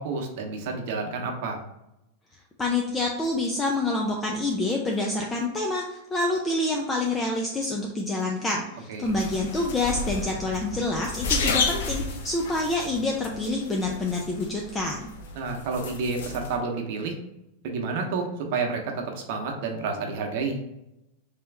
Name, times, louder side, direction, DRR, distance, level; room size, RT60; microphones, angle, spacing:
voice 1, 0.0-1.6 8.9-9.1 15.3-17.1 17.6-20.6, right 4 dB, 60° right, 2 dB, 0.9 m, -30 dB
voice 2, 2.6-15.1, left 2 dB, 15° left, 0 dB, 0.5 m, -27 dB
sound 1, 9.0-16.6, left 3 dB, 75° left, 0.7 m, -32 dB
3.4 x 3.0 x 3.4 m, 0.89 s
hypercardioid pair, 120°, 0 cm